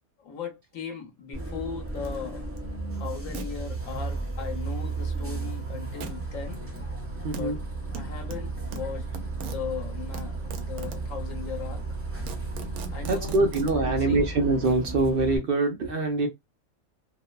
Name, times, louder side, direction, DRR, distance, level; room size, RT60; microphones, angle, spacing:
voice 1, 0.2-2.5 2.9-6.6 7.3-7.6 7.9-9.1 9.4-11.8 12.9-13.4 13.8-14.2 16.2-16.3, left 7 dB, 65° left, 1.2 m, -38 dB
Bus, 1.3-15.4, right 3 dB, 10° right, 0.8 m, -34 dB
sound 1, 2.0-2.2 2.6-2.7 3.3-3.5 6.0-6.2 7.3-7.4 7.9-9.6 10.1-11.1 11.7-11.8 12.1-13.8, right 4 dB, 85° right, 1.1 m, -39 dB
voice 2, 7.2-7.6 13.1-16.3, right 2 dB, 65° right, 0.5 m, -24 dB
2.8 x 2.0 x 2.2 m
omnidirectional pair, 1.5 m